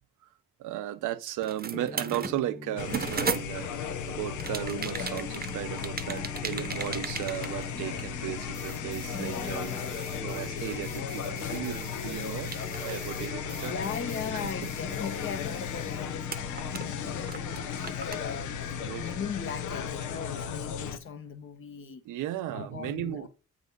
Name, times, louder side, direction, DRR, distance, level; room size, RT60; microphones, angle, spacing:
voice 1, 0.6-13.8 14.3-14.4 18.8-19.1 21.8-23.3, right 13 dB, 90° right, 0.8 m, -36 dB
sound 1, 1.4-3.9 4.4-8.3 8.5-16.0 16.3-18.2, right 6 dB, 30° right, 0.9 m, -38 dB
sound 2, 1.7-21.3, left 2 dB, 10° left, 0.6 m, -45 dB
sound 3, 2.8-21.0, left 7 dB, 85° left, 1.0 m, -35 dB
voice 2, 13.2-22.0 22.5-23.3, left 6 dB, 45° left, 0.9 m, -39 dB
8.2 x 3.9 x 5.2 m
cardioid pair, 90°, 30 cm